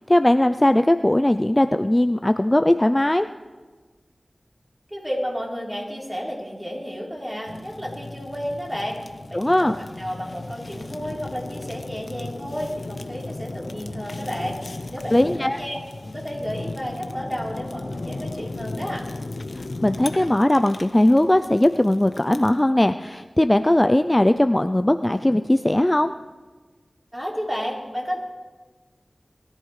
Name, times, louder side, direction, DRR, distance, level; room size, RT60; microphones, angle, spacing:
voice 1, 0.1-3.3 9.3-9.8 15.1-15.6 19.5-26.1, left 1 dB, 20° left, 9 dB, 0.4 m, -19 dB
voice 2, 4.9-9.0 9.3-19.1 27.1-28.2, equal, 10° right, -3 dB, 3.6 m, -32 dB
Fire, 7.5-22.6, left 2 dB, 70° left, 0.8 m, -36 dB
21.0 x 13.0 x 3.2 m, 1.4 s
wide cardioid pair, 55°, 0 cm